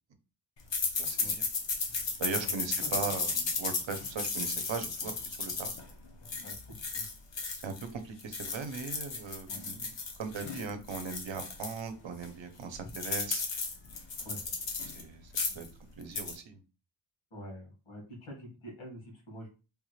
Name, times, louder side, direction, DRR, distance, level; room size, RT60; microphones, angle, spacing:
sound 1, 0.7-7.9 8.2-11.8 12.2-12.3 12.6-15.0 15.3-15.7 16.0-16.4, left 4 dB, 60° left, 0.9 m, -35 dB
voice 1, 1.0-1.4 2.2-5.7 7.6-13.4 14.8-15.7 16.0-16.6, right 5 dB, 65° right, 7 dB, 0.8 m, -39 dB
voice 2, 2.4-2.9 6.4-7.1 9.5-9.6 14.2-14.4 15.5-15.6 17.3-19.5, equal, 90° left, -1 dB, 1.8 m, -46 dB
3.4 x 2.4 x 3.1 m, 0.33 s
wide cardioid pair, 110°, 48 cm